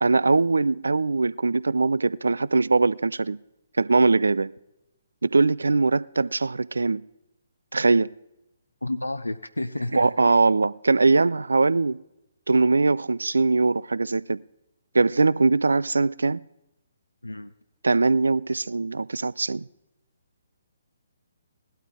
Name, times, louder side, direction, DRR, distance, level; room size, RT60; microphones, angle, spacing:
voice 1, 0.0-3.4 3.8-4.5 5.2-7.0 7.7-8.1 9.9-12.0 12.5-14.4 14.9-16.4 17.8-19.6, right 3 dB, 70° right, 0.3 m, -21 dB
voice 2, 8.8-10.1 17.2-17.5, left 2 dB, 85° left, 0.5 m, -30 dB
17.5 x 12.5 x 3.6 m
figure-of-eight pair, 135°, 0 cm